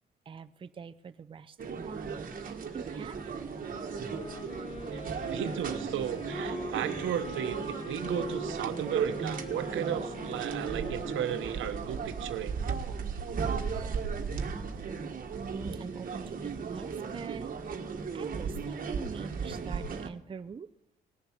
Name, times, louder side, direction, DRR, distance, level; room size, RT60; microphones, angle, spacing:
voice 1, 0.3-3.4 15.3-17.5 18.1-20.7, right 5 dB, 25° right, 9 dB, 0.5 m, -44 dB
sound 1, 1.6-20.1, right 5 dB, 45° right, 1.5 m, -36 dB
Wind instrument woodwind instrument, 3.9-12.2, left 2 dB, 30° left, 1.1 m, -44 dB
voice 2, 5.3-12.6, right 10 dB, 80° right, 10 dB, 1.0 m, -35 dB
19.0 x 6.9 x 6.4 m, 0.84 s
cardioid pair, 90°, 20 cm